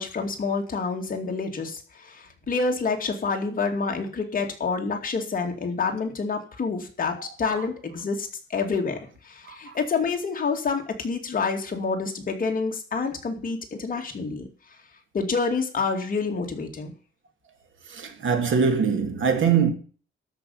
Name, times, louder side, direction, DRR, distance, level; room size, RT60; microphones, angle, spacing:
voice 1, 0.0-9.0 9.2-14.5 15.1-16.9, left 4 dB, 40° left, 2.4 m, -28 dB
voice 2, 17.9-19.7, right 6 dB, 70° right, 2.4 m, -23 dB
12.5 x 5.5 x 7.7 m
wide cardioid pair, 160°, 21 cm